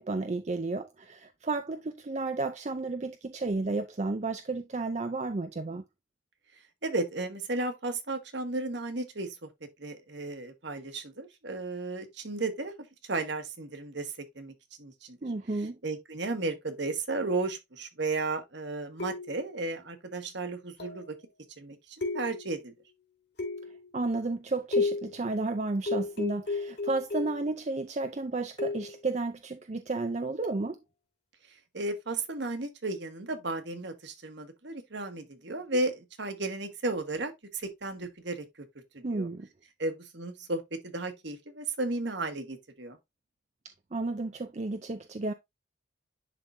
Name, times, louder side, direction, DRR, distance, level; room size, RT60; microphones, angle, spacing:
voice 1, 0.0-5.8 15.2-15.8 23.9-30.8 39.0-39.5 43.9-45.3, right 3 dB, 35° right, 0.5 m, -32 dB
voice 2, 6.8-9.5 9.8-12.7 13.0-14.5 14.8-15.2 15.8-21.1 21.6-22.7 31.7-38.4 38.9-39.3 39.8-43.0, right 2 dB, 60° right, 1.4 m, -34 dB
sound 1, 19.0-19.5 20.8-21.2 22.0-22.6 23.4-23.9 24.7-25.2 25.9-27.5 28.6-29.0 30.4-30.7, left 3 dB, 55° left, 2.5 m, -33 dB
10.5 x 3.8 x 2.6 m
head